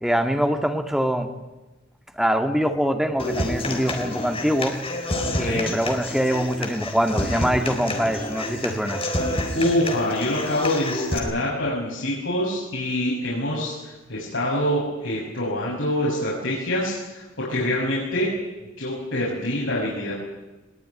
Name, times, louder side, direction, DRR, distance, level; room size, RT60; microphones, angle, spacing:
voice 1, 0.0-1.3 2.2-4.8 5.4-9.0, equal, 5° right, 5 dB, 2.0 m, -23 dB
Human voice / Acoustic guitar, 3.2-11.2, left 1 dB, 30° left, 3.9 m, -29 dB
voice 2, 5.3-5.6 9.5-18.3 18.8-20.1, left 1 dB, 70° left, -6 dB, 7.0 m, -25 dB
21.5 x 21.0 x 9.8 m, 1.1 s
head